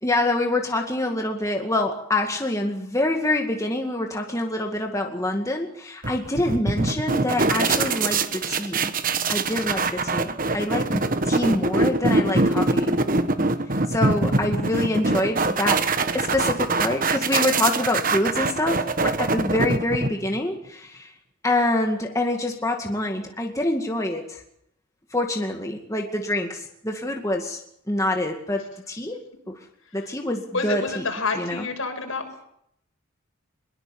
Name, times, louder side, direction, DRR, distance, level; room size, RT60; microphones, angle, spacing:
voice 1, 0.0-8.9 9.3-13.0 13.9-15.9 16.1-21.1 21.4-24.4 25.1-27.6 27.9-29.6 29.9-31.1 31.3-31.7, left 1 dB, 15° left, 2 dB, 2.2 m, -26 dB
sound 1, 6.0-20.4, right 3 dB, 40° right, 1.4 m, -23 dB
voice 2, 30.5-32.2, left 3 dB, 70° left, 5 dB, 6.4 m, -28 dB
23.0 x 22.5 x 7.2 m, 0.73 s
head